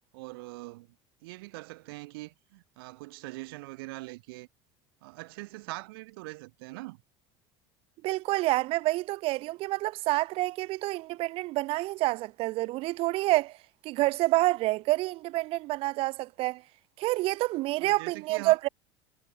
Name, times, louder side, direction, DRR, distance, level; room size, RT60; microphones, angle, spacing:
voice 1, 0.1-0.9 1.2-4.5 5.0-7.0 17.8-18.6, right 22 dB, 90° right, 3.1 m, -42 dB
voice 2, 8.0-13.5 13.8-16.6 17.0-18.7, right 19 dB, 50° right, 0.5 m, -28 dB
cardioid pair, 135°, 12 cm